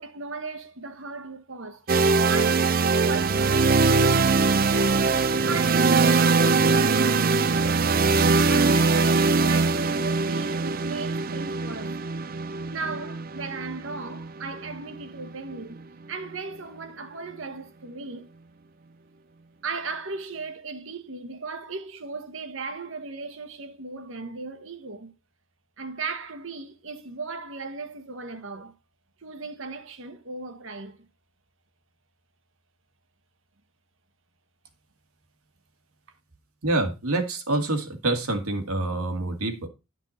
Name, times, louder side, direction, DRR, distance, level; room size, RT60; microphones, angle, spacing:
voice 1, 0.0-1.9 2.3-4.1 4.4-5.0 5.5-7.9 8.4-12.0 12.7-15.8 16.1-18.3 19.6-25.1 25.8-28.8 29.2-31.1, right 4 dB, 60° right, 1.2 m, -37 dB
sound 1, 1.9-15.7, right 4 dB, 40° right, 0.4 m, -22 dB
voice 2, 36.6-39.7, right 2 dB, 80° right, 2.0 m, -26 dB
11.5 x 6.0 x 4.2 m
head